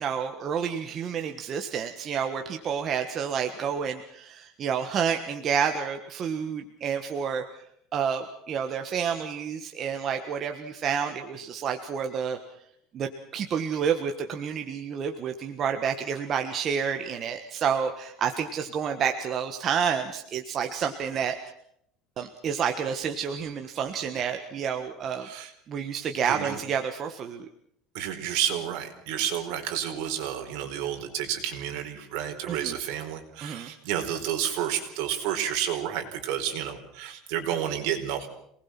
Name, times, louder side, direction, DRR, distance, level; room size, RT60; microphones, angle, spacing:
voice 1, 0.0-7.4 7.9-12.4 12.9-21.4 22.2-25.3 25.7-27.4 32.5-32.8 33.4-33.7, right 7 dB, 30° right, 5 dB, 1.5 m, -29 dB
voice 2, 25.2-25.5 26.2-26.6 27.9-38.3, right 10 dB, 65° right, 4 dB, 4.6 m, -30 dB
27.0 x 20.0 x 6.0 m, 0.71 s
cardioid pair, 170°, 0 cm